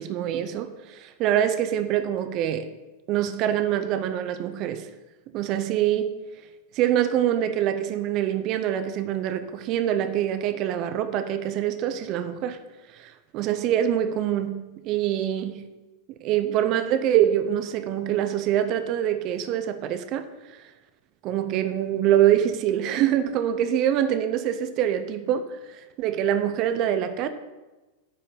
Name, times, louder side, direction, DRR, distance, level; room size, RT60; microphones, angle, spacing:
voice 1, 0.0-2.7 3.1-4.9 5.3-6.1 6.7-12.6 12.9-15.6 16.1-20.3 21.2-27.3, right 10 dB, 40° right, 0.6 m, -25 dB
9.8 x 4.3 x 6.8 m
figure-of-eight pair, 90°, 0 cm